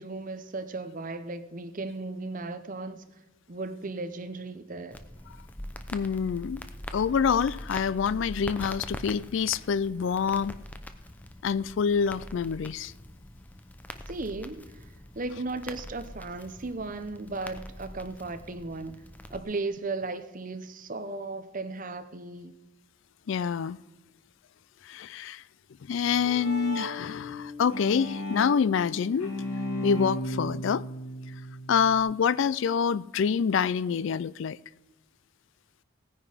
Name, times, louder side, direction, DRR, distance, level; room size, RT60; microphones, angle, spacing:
voice 1, 0.0-3.0 3.5-5.0 14.1-14.8 15.2-19.0 19.3-22.5, right 3 dB, 40° right, 0.7 m, -36 dB
Crackle, 4.9-19.4, left 1 dB, 5° left, 0.6 m, -43 dB
voice 2, 5.9-6.6 6.9-10.6 11.4-12.9 23.3-23.8 24.8-25.4 25.9-29.3 29.8-30.8 31.7-34.6, left 6 dB, 60° left, 0.3 m, -26 dB
Bowed string instrument, 25.9-32.0, left 1 dB, 85° left, 2.4 m, -35 dB
18.0 x 9.7 x 5.0 m
head